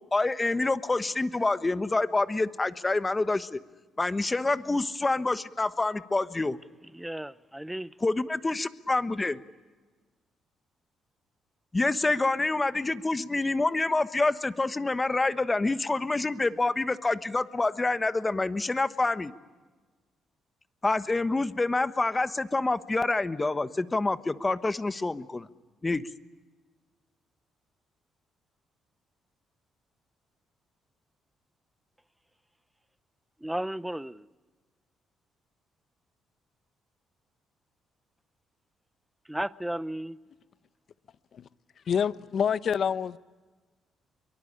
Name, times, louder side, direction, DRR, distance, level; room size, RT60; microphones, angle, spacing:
voice 1, 0.1-3.6 4.0-6.6 8.0-9.4 11.7-19.3 20.8-25.5 25.8-26.0, left 2 dB, 20° left, 1.2 m, -27 dB
voice 2, 6.9-7.9 33.4-34.3 39.3-40.2, right 1 dB, 5° right, 0.7 m, -34 dB
voice 3, 41.9-43.2, left 7 dB, 55° left, 0.8 m, -26 dB
24.0 x 23.5 x 8.7 m
cardioid pair, 90°, 0 cm